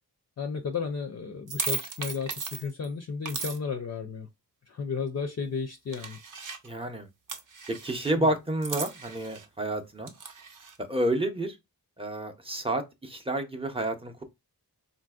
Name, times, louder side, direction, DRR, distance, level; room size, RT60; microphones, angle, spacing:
voice 1, 0.4-4.3 4.7-6.2 8.1-8.3, left 5 dB, 45° left, 0.4 m, -33 dB
sound 1, 1.5-2.9 3.3-3.6 5.9-6.7 7.3-8.1 8.6-9.5 10.1-10.8, right 5 dB, 55° right, 0.7 m, -36 dB
voice 2, 6.6-7.1 7.7-10.1 10.8-11.6 12.0-14.2, right 1 dB, 15° right, 0.6 m, -30 dB
4.0 x 2.5 x 2.3 m
wide cardioid pair, 95°, 38 cm